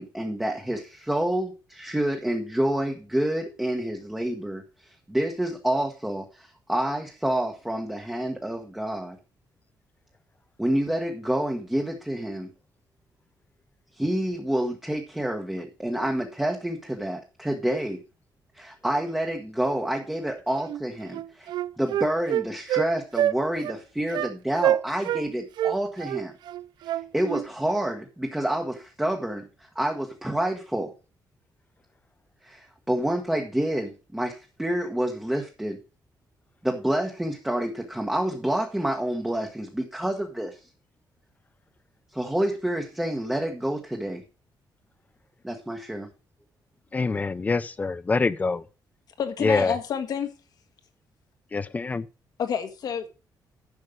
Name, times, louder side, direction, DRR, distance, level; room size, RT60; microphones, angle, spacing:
voice 1, 0.0-4.6 5.1-9.2 10.6-12.5 14.0-18.0 18.5-26.3 27.1-30.9 32.4-35.8 36.6-40.6 42.1-44.2 45.4-46.1, right 1 dB, 5° right, 1.2 m, -28 dB
Wind instrument woodwind instrument, 20.7-20.8 21.1-22.9 23.2-23.4 23.6-23.8 24.1-24.3 24.6-25.2 25.6-27.5, right 12 dB, 75° right, 0.4 m, -26 dB
voice 2, 46.9-48.6 49.4-49.8 51.5-52.0, left 4 dB, 20° left, 0.5 m, -25 dB
voice 3, 49.2-50.3 52.4-53.1, left 7 dB, 60° left, 1.6 m, -29 dB
11.0 x 6.4 x 5.1 m
cardioid pair, 155°, 8 cm